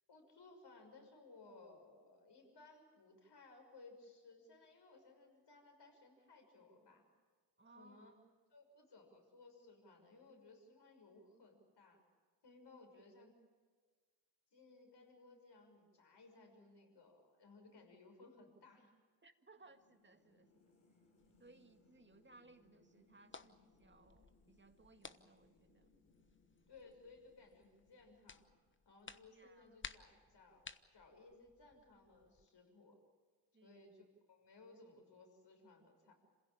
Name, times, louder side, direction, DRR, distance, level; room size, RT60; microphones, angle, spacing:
voice 1, 0.1-7.0 7.6-8.1 8.5-12.0 12.4-13.4 14.5-19.0 26.7-28.4 28.8-33.0 33.6-36.1, left 3 dB, 55° left, 4 dB, 6.4 m, -61 dB
voice 2, 7.6-8.2 13.2-13.3 19.2-20.6 21.4-25.9 29.3-29.8 33.5-33.9, right 3 dB, 20° right, 7 dB, 2.0 m, -65 dB
sound 1, 19.6-28.9, left 2 dB, 85° left, 7.0 m, -73 dB
sound 2, 21.2-32.5, left 4 dB, 25° left, 1.1 m, -59 dB
27.0 x 16.5 x 8.8 m, 1.5 s
supercardioid pair, 55°, 50 cm